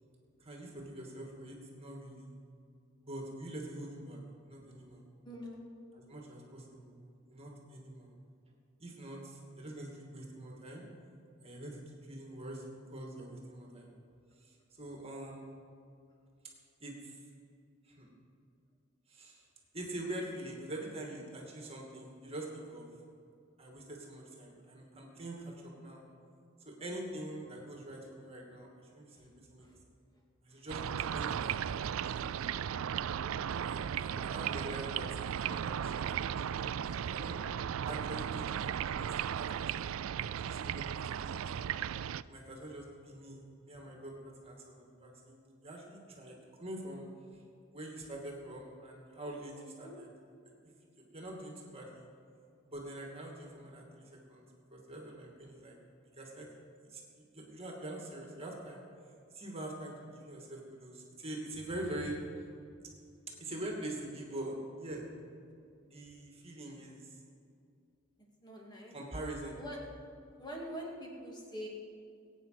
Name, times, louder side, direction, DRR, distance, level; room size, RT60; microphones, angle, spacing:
voice 1, 0.4-2.3 3.0-5.0 5.9-6.9 7.3-8.1 8.8-10.8 11.4-13.9 14.4-15.4 16.8-17.2 17.8-18.1 19.1-19.5 19.7-22.9 23.6-26.0 26.6-29.7 30.4-31.8 32.0-32.9 33.5-36.8 37.1-37.4 37.9-41.4 42.2-47.1 47.3-47.4 47.7-50.1 51.0-52.1 52.7-55.8 56.1-56.5 56.8-58.8 59.3-62.2 63.4-65.1 65.8-67.2 68.9-69.6, right 1 dB, 30° right, 0 dB, 2.5 m, -45 dB
voice 2, 5.2-5.6 29.6-29.8 49.6-50.0 68.4-69.0 69.6-69.9 70.4-71.7, equal, 20° left, -2 dB, 2.7 m, -44 dB
sound 1, 30.7-42.2, right 8 dB, 80° right, 0.4 m, -36 dB
21.5 x 9.2 x 6.0 m, 2.5 s
head